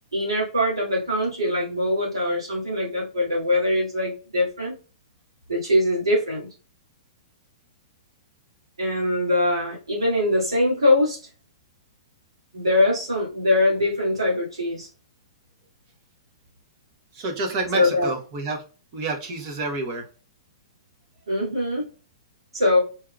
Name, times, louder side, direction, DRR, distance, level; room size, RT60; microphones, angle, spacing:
voice 1, 0.1-4.8 5.5-6.5 8.8-11.2 12.5-14.9 17.7-18.1 21.3-21.9 22.5-22.8, left 1 dB, 85° right, -4 dB, 2.1 m, -22 dB
voice 2, 17.1-18.6 18.9-20.0, right 3 dB, 45° right, 3 dB, 1.2 m, -28 dB
4.5 x 3.6 x 2.3 m, 0.35 s
hypercardioid pair, 120°, 3 cm